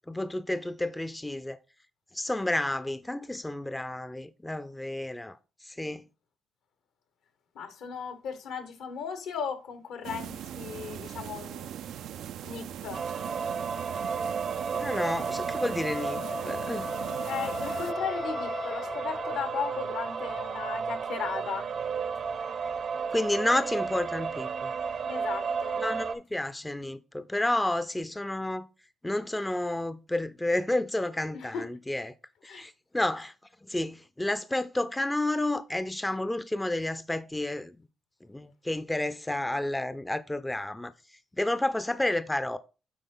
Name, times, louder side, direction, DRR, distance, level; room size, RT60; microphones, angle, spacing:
voice 1, 0.1-1.6 2.1-5.4 5.6-6.0 14.7-16.9 23.1-24.7 25.8-28.7 29.0-32.1 32.4-33.3 33.7-37.8 38.3-40.9 41.4-42.6, left 1 dB, 10° left, 0.4 m, -30 dB
voice 2, 7.5-11.7 12.4-13.0 17.2-21.6 25.1-25.8 31.3-31.6 32.5-32.6, left 7 dB, 80° left, 1.3 m, -36 dB
sound 1, 10.0-17.9, right 10 dB, 75° right, 0.3 m, -40 dB
sound 2, 12.9-26.2, right 6 dB, 55° right, 0.7 m, -33 dB
Wind instrument woodwind instrument, 15.8-19.8, left 4 dB, 50° left, 0.9 m, -38 dB
9.2 x 3.8 x 3.8 m
cardioid pair, 90°, 0 cm